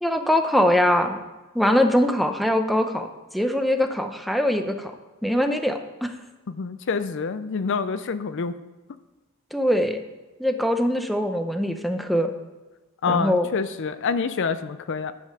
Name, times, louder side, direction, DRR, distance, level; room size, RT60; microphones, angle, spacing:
voice 1, 0.0-1.2 1.5-3.1 3.3-4.9 5.2-6.1 9.5-10.0 10.4-12.3 13.1-13.5, left 1 dB, ahead, 6 dB, 0.7 m, -22 dB
voice 2, 6.5-8.5 13.0-15.1, left 5 dB, 55° left, 12 dB, 0.5 m, -27 dB
10.5 x 5.5 x 6.7 m, 1.1 s
head